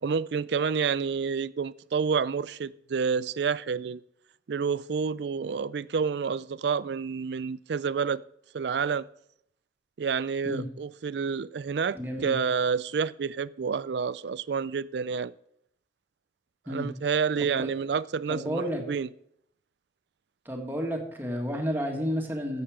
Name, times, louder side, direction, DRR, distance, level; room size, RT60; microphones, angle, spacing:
voice 1, 0.0-4.0 4.5-8.2 8.5-9.1 10.0-15.3 16.7-19.1, right 6 dB, 65° right, 0.4 m, -29 dB
voice 2, 11.9-12.4 16.7-16.9 17.4-17.7 18.3-18.8 20.5-22.6, equal, 10° right, 1.9 m, -31 dB
14.0 x 7.9 x 5.0 m
head